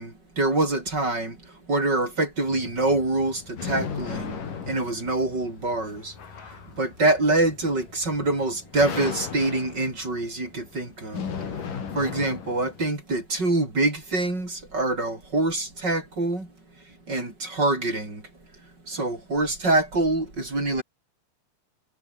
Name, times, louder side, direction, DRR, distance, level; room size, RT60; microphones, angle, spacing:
voice 1, 0.0-6.2 6.5-11.6 11.9-16.5 17.1-18.2 18.9-20.8, right 2 dB, 30° right, 7.2 m, -25 dB
sound 1, 2.4-12.9, left 6 dB, 75° left, 5.2 m, -37 dB
omnidirectional pair, 3.8 m